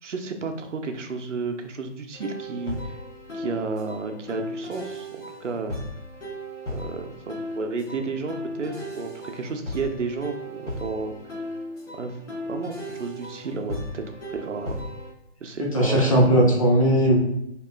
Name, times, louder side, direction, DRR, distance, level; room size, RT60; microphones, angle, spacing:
voice 1, 0.0-3.0 3.3-5.1 5.4-5.8 6.7-11.1 11.9-12.2 12.4-14.0 14.3-14.8 15.4-16.0, right 4 dB, 90° right, 5 dB, 0.5 m, -32 dB
sound 1, 2.1-15.1, equal, 80° left, 1.2 m, -36 dB
voice 2, 15.6-17.2, right 1 dB, 30° left, -2 dB, 0.6 m, -18 dB
2.8 x 2.3 x 2.2 m, 0.79 s
figure-of-eight pair, 150°, 35 cm